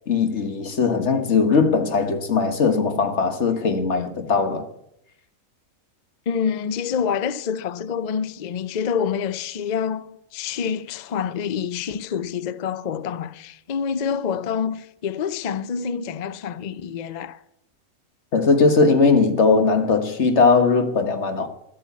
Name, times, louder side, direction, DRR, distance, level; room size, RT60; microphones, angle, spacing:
voice 1, 0.1-4.7 18.3-21.5, left 4 dB, 55° left, 1.6 m, -19 dB
voice 2, 6.3-17.4, left 7 dB, 70° left, 0.4 m, -27 dB
12.5 x 8.4 x 8.3 m
omnidirectional pair, 1.5 m